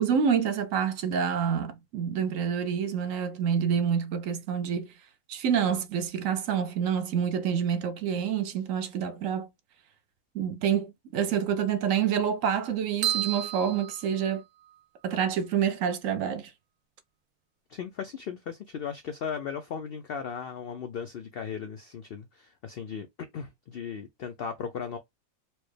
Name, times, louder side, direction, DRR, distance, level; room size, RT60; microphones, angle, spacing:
voice 1, 0.0-4.9 5.3-9.5 10.3-14.4 15.0-16.5, right 8 dB, 70° right, 0.9 m, -27 dB
sound 1, 13.0-14.8, right 12 dB, 90° right, 1.2 m, -32 dB
voice 2, 17.7-25.0, left 7 dB, 80° left, 0.5 m, -37 dB
4.4 x 2.0 x 3.2 m
omnidirectional pair, 1.5 m